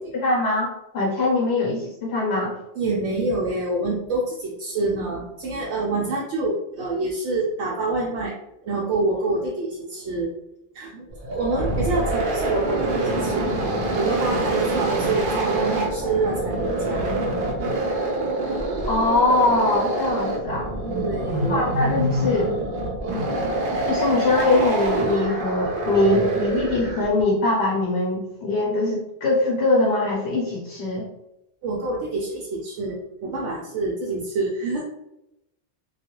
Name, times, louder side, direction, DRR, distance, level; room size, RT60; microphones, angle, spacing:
voice 1, 0.1-2.5 18.9-20.7 21.5-22.5 23.8-31.1, left 2 dB, 70° left, -3 dB, 0.9 m, -22 dB
voice 2, 2.8-8.3 8.6-10.3 10.7-11.1 11.3-13.5 13.9-17.0 20.9-21.6 31.6-34.8, right 2 dB, 85° right, -3 dB, 0.9 m, -26 dB
sound 1, 11.1-27.2, right 1 dB, 60° right, 0.7 m, -25 dB
2.3 x 2.3 x 2.9 m, 0.86 s
omnidirectional pair, 1.2 m